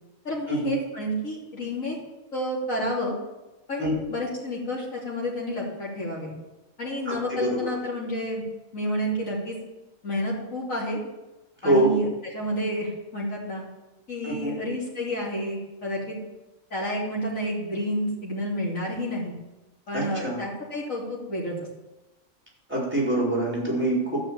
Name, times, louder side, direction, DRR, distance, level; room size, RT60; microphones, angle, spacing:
voice 1, 0.3-2.0 2.3-3.2 3.7-6.3 6.8-8.4 8.7-9.6 10.0-11.0 11.6-12.1 12.3-13.6 14.1-16.2 16.7-19.4 19.9-21.5, equal, 75° left, -5 dB, 3.5 m, -30 dB
voice 2, 7.1-7.6 11.6-11.9 14.2-14.5 19.9-20.4 22.7-24.2, right 1 dB, 10° right, -4 dB, 4.5 m, -25 dB
12.5 x 5.7 x 8.7 m, 1.0 s
omnidirectional pair, 1.4 m